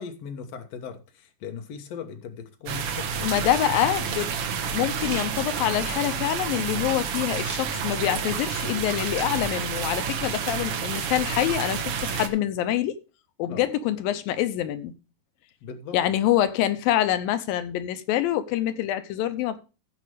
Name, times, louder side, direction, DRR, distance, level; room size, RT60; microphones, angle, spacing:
voice 1, 0.0-3.3 13.5-13.7 15.6-16.1, left 6 dB, 60° left, 2.0 m, -39 dB
sound 1, 2.7-12.3, right 6 dB, 75° right, 1.3 m, -29 dB
voice 2, 3.2-13.0 13.4-14.9 15.9-19.6, left 12 dB, 80° left, 2.5 m, -26 dB
15.5 x 5.2 x 4.8 m
omnidirectional pair, 4.2 m